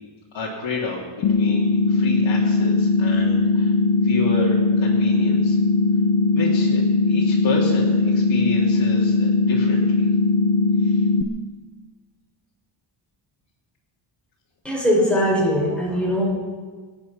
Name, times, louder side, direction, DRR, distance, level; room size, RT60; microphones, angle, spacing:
voice 1, 0.3-5.6 6.3-10.1 10.8-11.0, left 3 dB, 85° left, -6 dB, 2.9 m, -30 dB
sound 1, 1.2-11.2, left 3 dB, 60° left, 0.9 m, -19 dB
voice 2, 14.6-16.2, equal, ahead, -4 dB, 5.9 m, -20 dB
25.0 x 8.4 x 5.9 m, 1.5 s
wide cardioid pair, 130°, 45 cm